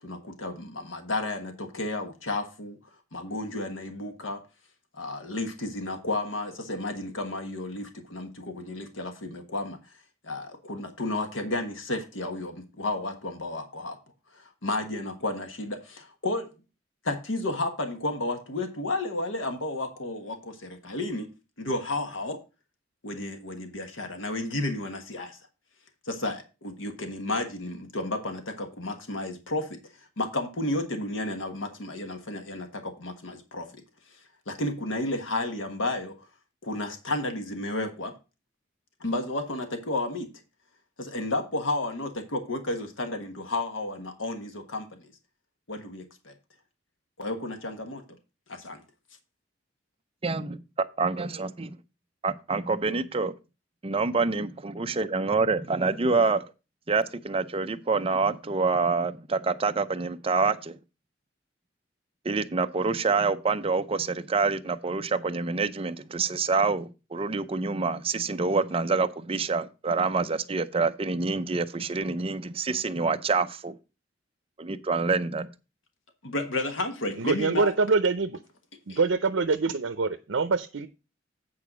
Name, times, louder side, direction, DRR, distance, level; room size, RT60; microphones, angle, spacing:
voice 1, 0.0-2.8 3.1-4.4 4.9-9.8 10.2-14.0 14.3-16.5 17.0-21.3 21.6-22.4 23.0-25.4 26.0-29.8 30.2-33.8 34.5-36.3 36.6-38.1 39.0-40.3 41.0-45.1 45.7-46.3 47.2-48.0 48.5-48.8 76.2-77.7 78.9-79.0, left 2 dB, 90° left, 1.4 m, -32 dB
voice 2, 50.2-50.6 51.0-51.8 52.2-53.3 53.8-56.4 56.9-60.8 62.2-73.8 74.6-75.5, right 4 dB, 30° right, 0.6 m, -27 dB
voice 3, 77.2-78.4 78.9-80.9, right 4 dB, 90° right, 0.6 m, -25 dB
8.7 x 4.7 x 6.1 m
head